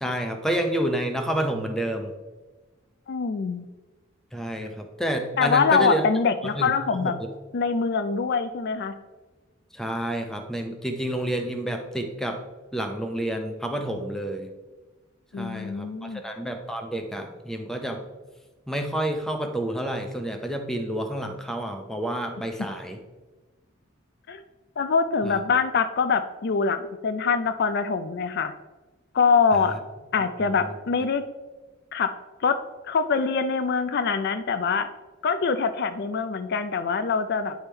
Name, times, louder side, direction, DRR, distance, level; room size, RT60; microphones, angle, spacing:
voice 1, 0.0-2.1 4.3-6.1 6.4-7.1 9.7-12.4 12.7-14.5 15.4-18.0 18.7-23.0 25.2-25.4 30.4-30.7, right 1 dB, ahead, 4 dB, 0.6 m, -29 dB
voice 2, 3.1-3.7 5.4-7.1 7.5-8.9 15.3-16.2 24.3-24.4 24.8-28.5 29.1-29.7 30.1-31.2 31.9-32.1 32.4-32.6 32.8-34.9 35.2-37.5, left 5 dB, 55° left, 10 dB, 0.4 m, -24 dB
9.8 x 3.5 x 4.4 m, 1.2 s
head